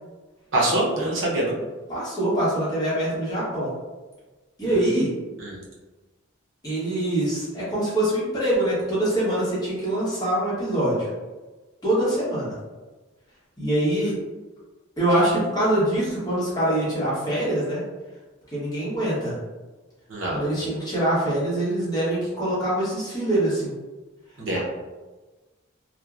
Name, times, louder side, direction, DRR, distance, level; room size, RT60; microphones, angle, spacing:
voice 1, 0.5-1.6 5.4-5.6 20.1-20.4 24.4-24.6, right 1 dB, 65° right, -4 dB, 0.7 m, -24 dB
voice 2, 1.9-3.7 4.6-5.1 6.6-11.1 11.8-12.5 13.6-14.1 15.0-17.8 18.5-19.4 20.3-23.7 24.5-24.6, right 1 dB, 20° left, -8 dB, 0.8 m, -24 dB
2.9 x 2.1 x 2.3 m, 1.2 s
head